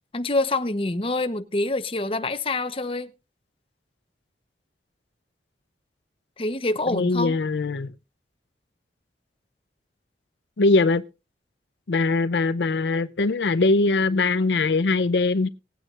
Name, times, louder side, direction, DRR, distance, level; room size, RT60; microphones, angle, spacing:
voice 1, 0.1-3.1 6.4-7.4, left 2 dB, 30° left, 0.8 m, -26 dB
voice 2, 6.9-7.9 10.6-11.0 11.9-15.5, left 3 dB, 85° left, 0.6 m, -21 dB
20.0 x 9.1 x 2.4 m
head